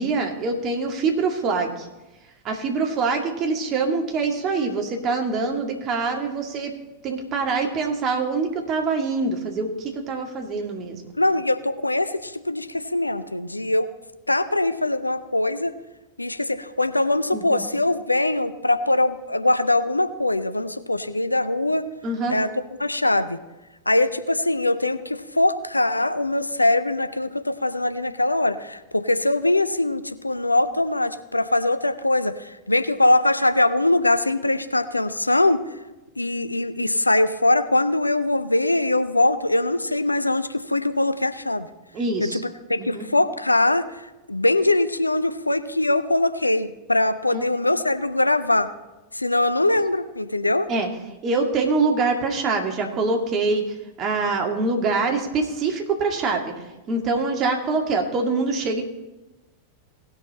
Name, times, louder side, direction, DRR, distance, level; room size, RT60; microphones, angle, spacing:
voice 1, 0.0-1.9 2.4-6.7 7.0-11.0 17.3-17.6 22.0-22.4 41.9-42.4 42.8-43.1 47.3-47.4 50.7-50.9 51.2-53.6 54.0-56.4 56.9-58.8, right 4 dB, 30° right, 2 dB, 1.9 m, -24 dB
voice 2, 11.2-13.9 14.3-15.7 16.2-21.8 22.3-22.5 22.8-23.4 23.9-35.6 36.2-41.7 42.2-42.4 42.7-48.7 49.1-50.7, left 2 dB, 85° left, 11 dB, 0.6 m, -22 dB
18.5 x 6.3 x 4.1 m, 1.0 s
figure-of-eight pair, 90°, 0 cm